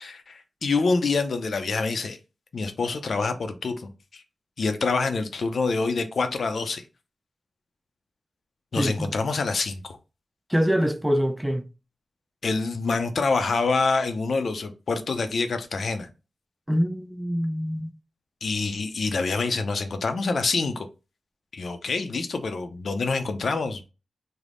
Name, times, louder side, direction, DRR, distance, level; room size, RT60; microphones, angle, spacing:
voice 1, 0.0-2.2 2.5-4.2 4.6-6.8 8.7-10.0 12.4-16.1 18.4-20.9 21.5-23.8, left 4 dB, 65° left, 0.5 m, -26 dB
voice 2, 8.8-9.1 10.5-11.7 16.7-17.9, equal, 5° right, 0.3 m, -25 dB
3.4 x 2.0 x 3.6 m
wide cardioid pair, 85°, 0 cm